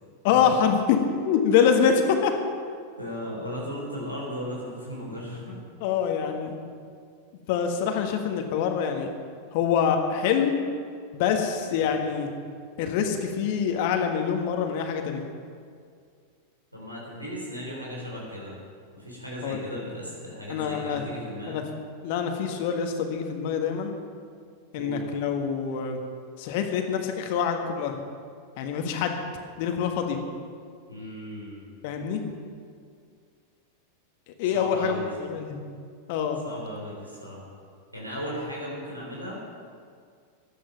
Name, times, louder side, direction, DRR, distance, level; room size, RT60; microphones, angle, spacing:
voice 1, 0.2-2.3 5.8-6.5 7.5-9.1 9.5-10.6 11.1-12.3 12.8-15.2 19.4-19.6 20.5-21.0 21.5-21.6 22.0-23.9 24.7-26.0 26.4-28.0 28.6-29.2 29.6-30.2 31.8-32.2 34.4-35.6 36.1-36.4, left 7 dB, 50° left, 4 dB, 1.6 m, -25 dB
voice 2, 1.5-1.9 3.0-5.6 11.7-11.9 16.7-18.5 18.9-21.6 24.7-25.0 30.9-31.6 34.5-35.1 36.4-37.4 37.9-39.4, equal, 90° right, -4 dB, 3.7 m, -36 dB
15.5 x 11.0 x 5.9 m, 2.1 s
figure-of-eight pair, 90°, 0 cm